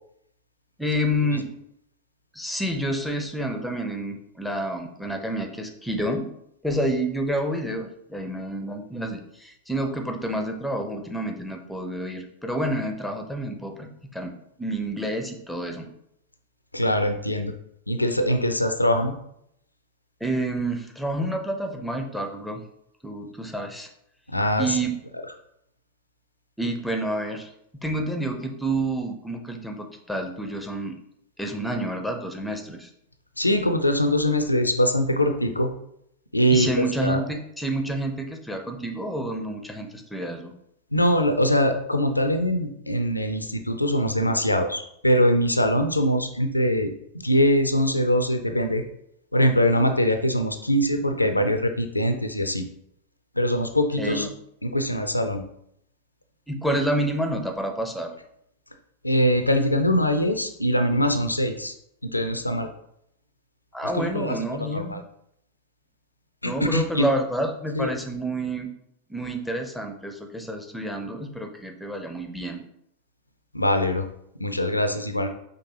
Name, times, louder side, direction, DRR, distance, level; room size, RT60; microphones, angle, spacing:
voice 1, 0.8-1.5 2.3-6.3 6.6-15.9 20.2-22.6 23.0-23.9 24.6-25.0 26.6-31.0 31.4-32.9 36.5-40.5 54.0-54.3 56.5-58.1 63.7-65.0 66.4-68.7 69.1-72.6, right 1 dB, ahead, 4 dB, 0.7 m, -29 dB
voice 2, 16.7-17.5 17.9-19.1 24.3-24.8 33.4-35.7 36.3-37.2 40.9-46.9 47.2-48.8 49.3-52.6 53.4-54.3 54.6-55.4 59.0-61.7 62.0-62.7 63.9-65.0 66.4-67.1 67.8-67.9 73.5-74.1 74.4-75.3, equal, 85° left, 7 dB, 0.5 m, -22 dB
5.3 x 3.5 x 2.8 m, 0.74 s
figure-of-eight pair, 90°, 0 cm